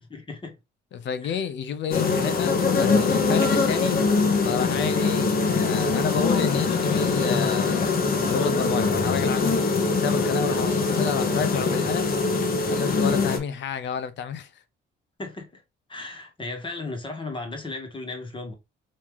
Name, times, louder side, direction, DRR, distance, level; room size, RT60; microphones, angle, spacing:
voice 1, 0.1-0.6 1.2-1.4 15.2-15.6 15.9-18.5, left 2 dB, 25° left, 1.4 m, -35 dB
voice 2, 0.9-4.1 4.4-8.0 8.3-9.6 10.0-12.1 12.7-14.6, left 7 dB, 65° left, 0.6 m, -30 dB
sound 1, 1.9-13.4, left 4 dB, 50° left, 0.9 m, -23 dB
3.2 x 2.8 x 3.5 m
cardioid pair, 90°, 20 cm